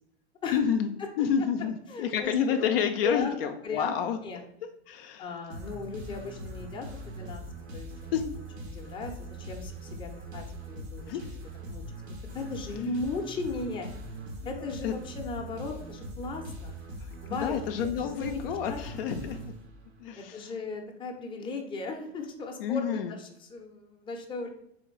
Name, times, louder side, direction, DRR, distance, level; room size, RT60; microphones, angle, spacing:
voice 1, 0.5-0.9 1.2-4.2 4.9-5.3 8.1-8.3 11.1-11.3 14.5-14.9 17.0-17.1 17.4-19.5 20.0-20.5 22.6-23.2, left 8 dB, 60° left, 6 dB, 0.5 m, -29 dB
voice 2, 1.9-2.7 3.0-3.4 3.6-4.0 4.2-4.4 5.2-7.4 7.7-8.1 8.6-11.2 11.7-11.8 12.3-13.9 14.4-16.8 17.2-19.1 20.2-24.5, left 3 dB, 15° left, 2 dB, 0.6 m, -37 dB
sound 1, 5.5-20.1, right 1 dB, 75° right, 0.9 m, -41 dB
3.7 x 3.4 x 3.1 m, 0.75 s
hypercardioid pair, 100°, 33 cm